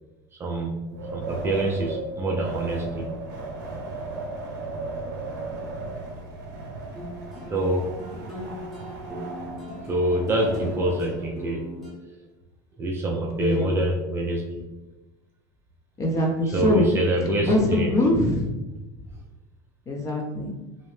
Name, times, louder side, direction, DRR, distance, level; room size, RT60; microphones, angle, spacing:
voice 1, 0.4-0.8 1.1-3.1 7.5-7.9 9.9-11.7 12.8-14.5 16.5-18.0, right 1 dB, 20° right, -1 dB, 0.4 m, -26 dB
Wind, 0.9-11.3, right 3 dB, 90° right, 0.7 m, -36 dB
sound 1, 7.0-11.9, equal, ahead, 0.8 m, -38 dB
voice 2, 16.0-16.9 17.4-18.4 19.9-20.5, left 1 dB, 30° left, 1 dB, 0.6 m, -22 dB
2.8 x 2.0 x 3.1 m, 1.1 s
supercardioid pair, 125°, 11 cm